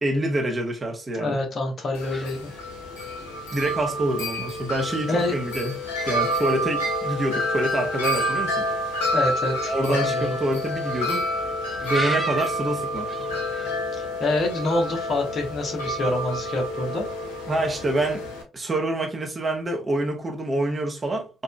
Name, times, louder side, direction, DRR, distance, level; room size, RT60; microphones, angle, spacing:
voice 1, 0.0-1.4 3.5-5.8 6.0-8.7 9.6-11.3 11.8-13.1 17.5-18.2 18.5-21.4, right 1 dB, 30° right, 1.1 m, -26 dB
voice 2, 1.1-2.5 5.1-5.3 9.1-10.4 14.0-17.1, left 2 dB, 45° left, 1.1 m, -26 dB
sound 1, 1.8-13.8, left 2 dB, 20° left, 0.8 m, -41 dB
Wind chime, 2.0-18.4, equal, 75° left, 0.9 m, -28 dB
4.2 x 2.6 x 2.3 m
figure-of-eight pair, 50°, 0 cm